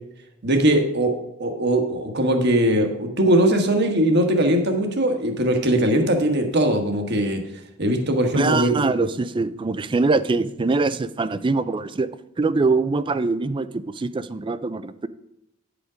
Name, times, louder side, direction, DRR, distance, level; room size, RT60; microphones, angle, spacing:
voice 1, 0.4-7.4 7.8-8.9, right 1 dB, 55° right, 4 dB, 1.3 m, -20 dB
voice 2, 8.3-12.1 12.4-15.1, right 3 dB, 25° right, 14 dB, 0.4 m, -23 dB
9.5 x 5.1 x 5.0 m, 0.85 s
head